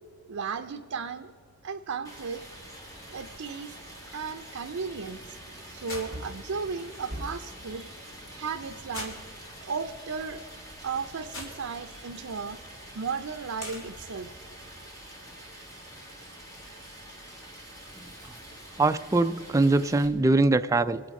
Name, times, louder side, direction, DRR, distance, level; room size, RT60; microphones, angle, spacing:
voice 1, 0.3-1.3 1.6-2.4 3.1-3.8 4.1-5.4 5.7-7.9 8.3-9.2 9.6-10.6 10.8-12.6 12.9-14.4, right 5 dB, 75° right, 6 dB, 0.6 m, -35 dB
Stream, 2.0-20.1, right 1 dB, 15° left, 2.1 m, -46 dB
sound 1, 2.3-14.1, left 1 dB, 65° left, 2.9 m, -48 dB
Wood, 5.8-7.6 10.3-11.1 11.4-11.5, equal, 40° right, 2.1 m, -43 dB
voice 2, 18.8-21.0, right 2 dB, 15° right, 10 dB, 0.3 m, -23 dB
24.5 x 8.9 x 5.3 m, 2.3 s
head